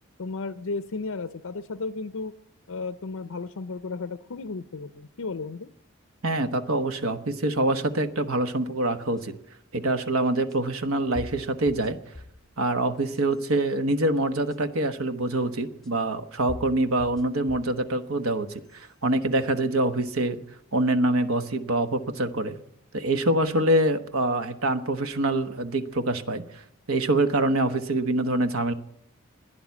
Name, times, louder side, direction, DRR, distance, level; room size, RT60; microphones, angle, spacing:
voice 1, 0.2-2.3 2.7-5.7, left 3 dB, 80° left, 12 dB, 0.6 m, -34 dB
voice 2, 6.2-9.3 9.7-12.0 12.6-20.4 20.7-22.6 22.9-26.6 26.9-28.7, right 2 dB, 75° right, 9 dB, 1.2 m, -25 dB
sound 1, 9.2-9.3 10.5-10.6 11.1-12.5 13.0-13.5 14.5-14.6 15.8-15.9 16.5-17.8 18.3-18.9, left 1 dB, ahead, 0.9 m, -42 dB
16.0 x 10.5 x 8.3 m, 0.78 s
head